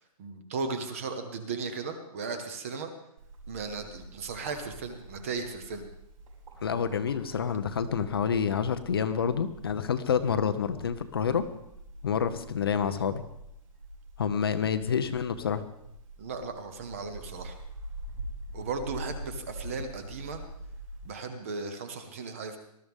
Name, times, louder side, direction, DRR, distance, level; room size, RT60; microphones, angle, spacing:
voice 1, 0.2-2.9 3.5-5.8 16.2-17.6 18.5-20.4 21.0-22.6, right 4 dB, 20° right, 8 dB, 0.9 m, -36 dB
Bird, 3.2-21.1, right 1 dB, 65° right, 5.9 m, -45 dB
voice 2, 6.6-11.4 12.0-13.2 14.2-15.6, left 7 dB, 40° left, 10 dB, 0.7 m, -28 dB
19.5 x 13.0 x 3.6 m, 0.78 s
hypercardioid pair, 180°, 19 cm